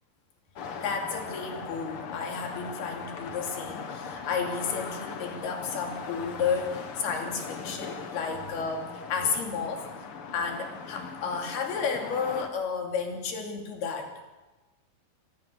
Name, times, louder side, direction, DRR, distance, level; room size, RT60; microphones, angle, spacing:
sound 1, 0.6-12.5, left 5 dB, 55° left, 1.7 m, -39 dB
voice 1, 0.8-9.9 10.3-14.1, left 5 dB, 85° left, 3 dB, 4.8 m, -32 dB
sound 2, 5.6-11.2, right 2 dB, 75° right, 7.2 m, -55 dB
24.5 x 18.5 x 6.5 m, 1.1 s
omnidirectional pair, 4.4 m